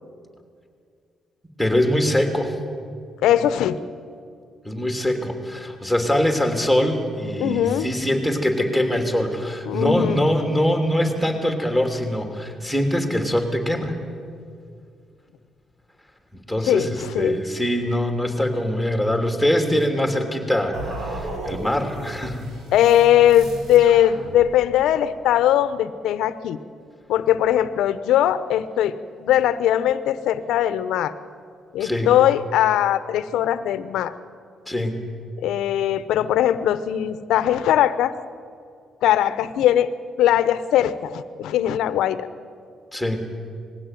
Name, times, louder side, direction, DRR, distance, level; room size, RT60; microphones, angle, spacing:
voice 1, 1.6-2.5 4.6-13.9 16.3-16.9 17.2-22.5 31.8-32.1 34.7-35.0 42.9-43.2, left 1 dB, ahead, 5 dB, 3.1 m, -23 dB
voice 2, 3.2-3.8 7.4-7.9 9.7-10.2 16.6-17.4 22.7-26.6 27.1-31.2 31.7-34.1 35.4-38.1 39.0-39.9 40.2-42.3, left 11 dB, 85° left, 14 dB, 0.8 m, -20 dB
sound 1, 20.7-24.8, right 1 dB, 75° right, 4.0 m, -35 dB
20.5 x 16.0 x 9.3 m, 2.3 s
cardioid pair, 90°, 0 cm